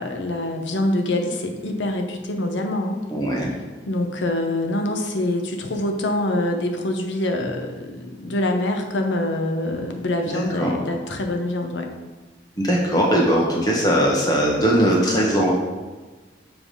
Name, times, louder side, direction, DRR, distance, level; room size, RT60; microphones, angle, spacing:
voice 1, 0.0-3.0 3.9-11.9, left 1 dB, 80° left, 3 dB, 0.8 m, -25 dB
voice 2, 3.1-3.5 10.3-10.7 12.6-15.6, equal, 20° left, -3 dB, 1.4 m, -20 dB
7.4 x 3.6 x 4.9 m, 1.3 s
head